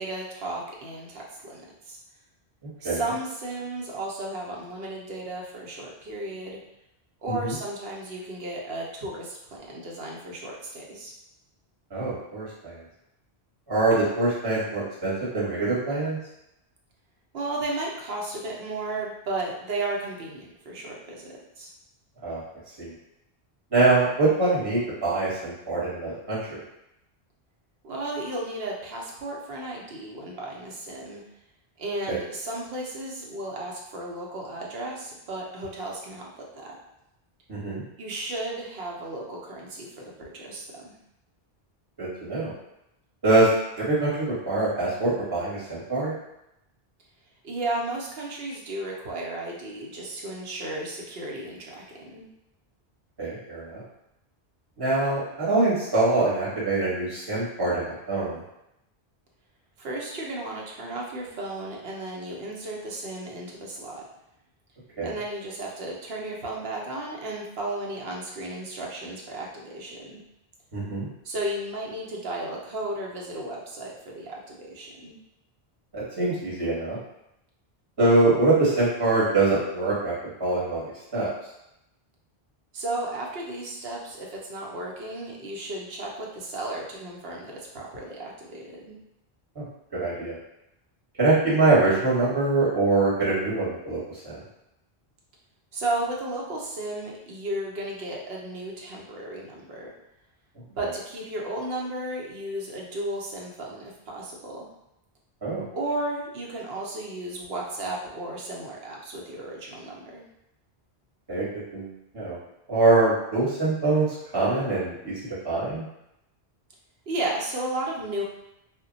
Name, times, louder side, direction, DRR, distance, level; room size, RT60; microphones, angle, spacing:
voice 1, 0.0-2.0 2.8-6.6 7.2-11.1 17.3-21.7 27.8-31.2 31.8-36.8 38.0-41.0 47.4-51.8 52.1-52.3 59.8-64.0 65.0-70.2 71.2-75.2 82.7-89.0 95.7-99.9 100.6-104.7 105.7-110.3 117.1-118.2, right 2 dB, 75° right, -2 dB, 0.9 m, -34 dB
voice 2, 11.9-12.8 13.7-16.2 22.2-22.4 22.8-22.9 23.7-26.4 32.1-32.2 37.5-37.8 42.0-42.5 43.2-43.5 43.8-46.1 53.2-53.8 54.8-58.4 65.0-65.1 70.7-71.1 75.9-77.0 78.0-80.1 80.4-80.8 81.1-81.3 89.5-89.6 89.9-90.4 91.2-94.4 105.4-105.6 111.3-111.4 111.7-112.4 112.7-115.1 115.4-115.8, right 2 dB, 25° right, -8 dB, 0.9 m, -24 dB
2.1 x 2.1 x 3.8 m, 0.86 s
omnidirectional pair, 1.1 m